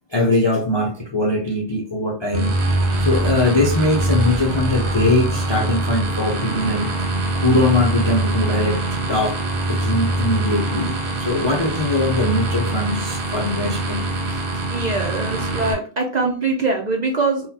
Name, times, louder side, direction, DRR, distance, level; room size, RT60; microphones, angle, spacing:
voice 1, 0.1-2.6 3.0-6.9 7.4-8.8 9.1-9.4 9.7-14.4, left 2 dB, 40° left, -1 dB, 0.4 m, -21 dB
sound 1, 2.3-15.7, right 2 dB, 75° right, 1.0 m, -23 dB
voice 2, 14.7-17.5, right 3 dB, 50° right, 1 dB, 0.5 m, -22 dB
3.9 x 2.3 x 2.7 m, 0.38 s
omnidirectional pair, 1.2 m